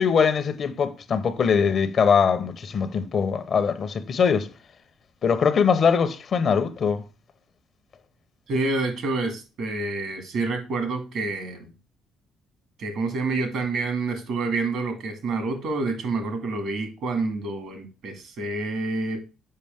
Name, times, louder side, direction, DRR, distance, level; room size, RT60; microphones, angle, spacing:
voice 1, 0.0-4.5 5.2-7.0, left 6 dB, 50° left, 0.8 m, -22 dB
voice 2, 8.5-11.7 12.8-19.2, right 3 dB, 70° right, 2.2 m, -28 dB
6.7 x 5.1 x 3.5 m
cardioid pair, 90°, 0 cm